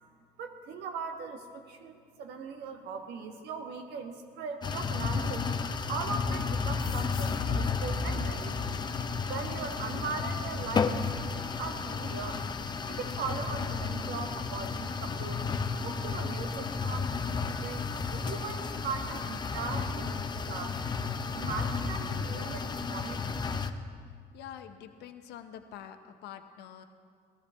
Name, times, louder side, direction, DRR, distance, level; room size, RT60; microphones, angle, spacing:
voice 1, 0.4-5.5 5.9-8.8 9.3-12.4 12.8-15.4 15.8-17.1 17.5-20.9 21.3-23.2, right 5 dB, 80° right, 5 dB, 1.4 m, -39 dB
sound 1, 4.6-23.7, left 5 dB, 25° left, 0.6 m, -32 dB
sound 2, 6.8-10.0, left 4 dB, 65° left, 1.2 m, -47 dB
voice 2, 24.0-26.8, left 10 dB, 80° left, 7 dB, 0.8 m, -46 dB
17.5 x 13.5 x 3.4 m, 2.1 s
cardioid pair, 110°, 17 cm